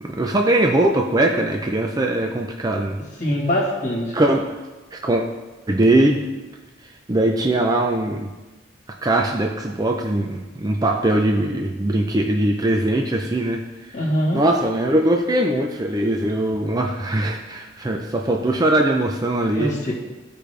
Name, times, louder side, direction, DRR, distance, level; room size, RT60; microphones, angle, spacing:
voice 1, 0.0-3.0 4.1-4.6 4.9-5.2 5.7-6.2 7.1-8.3 9.0-13.6 14.3-19.7, right 1 dB, 20° right, 2 dB, 0.5 m, -21 dB
voice 2, 3.2-4.2 13.9-14.4 19.5-19.9, equal, 35° left, -3 dB, 1.7 m, -23 dB
14.0 x 5.1 x 3.3 m, 1.2 s
head